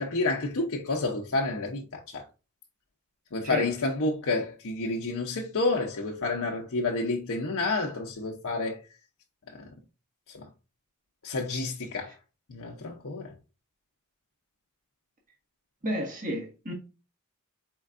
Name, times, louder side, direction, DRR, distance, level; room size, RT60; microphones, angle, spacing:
voice 1, 0.0-2.2 3.3-8.8 9.5-9.7 10.3-10.5 11.2-12.1 12.5-13.3, left 3 dB, 65° left, 0.7 m, -29 dB
voice 2, 15.8-16.7, equal, 40° right, 1.5 m, -31 dB
4.4 x 4.4 x 2.5 m
head